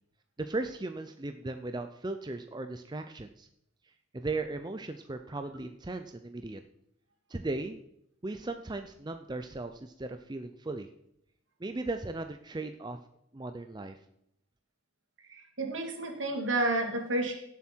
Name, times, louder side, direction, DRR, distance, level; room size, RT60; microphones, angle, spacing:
voice 1, 0.4-3.5 4.1-6.6 7.3-7.8 8.2-10.9 11.6-13.0 13.3-14.0, right 2 dB, 20° right, 7 dB, 0.5 m, -37 dB
voice 2, 15.3-17.3, right 2 dB, 75° right, 2 dB, 2.5 m, -30 dB
17.0 x 7.3 x 4.5 m, 0.76 s
head